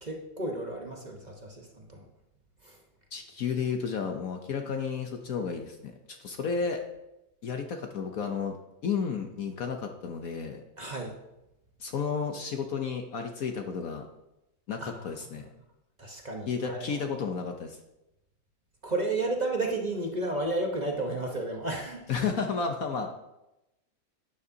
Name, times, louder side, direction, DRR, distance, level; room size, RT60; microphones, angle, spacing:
voice 1, 0.0-2.0 2.6-2.8 10.8-11.2 14.8-15.1 16.0-17.0 18.8-22.1, right 2 dB, 30° right, 1 dB, 0.9 m, -32 dB
voice 2, 3.1-6.8 7.4-10.6 11.8-14.1 14.7-15.5 16.5-17.8 22.1-23.1, left 6 dB, 60° left, 4 dB, 1.0 m, -32 dB
11.5 x 9.5 x 2.8 m, 0.92 s
omnidirectional pair, 2.0 m